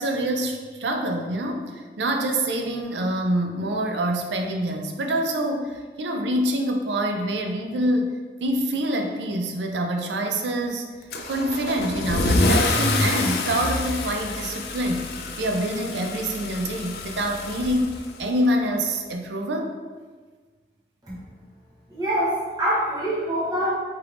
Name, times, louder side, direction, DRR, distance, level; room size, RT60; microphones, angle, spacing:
voice 1, 0.0-10.9 11.3-15.1 15.4-17.9 18.2-19.7, right 1 dB, 80° right, 3 dB, 0.5 m, -26 dB
Car / Engine starting / Accelerating revving vroom, 11.1-18.5, left 2 dB, 60° left, 0.4 m, -27 dB
voice 2, 21.9-23.7, equal, 20° right, -8 dB, 0.8 m, -25 dB
4.5 x 3.4 x 2.5 m, 1.4 s
head